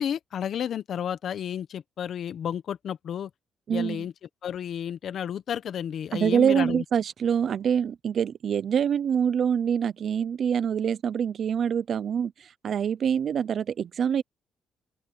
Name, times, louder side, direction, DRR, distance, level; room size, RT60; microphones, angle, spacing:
voice 1, 0.0-3.3 3.7-4.1 4.4-6.8, left 9 dB, 65° left, 1.1 m, -32 dB
voice 2, 3.7-4.1 6.1-14.2, right 8 dB, 60° right, 0.6 m, -25 dB
open air
cardioid pair, 90°, 0 cm